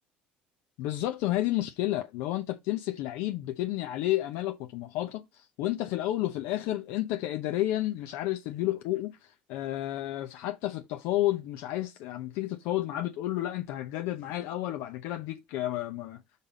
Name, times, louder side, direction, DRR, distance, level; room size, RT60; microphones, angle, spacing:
voice 1, 0.8-16.2, left 15 dB, 75° left, 0.8 m, -31 dB
5.3 x 4.2 x 5.1 m
supercardioid pair, 100°, 4 cm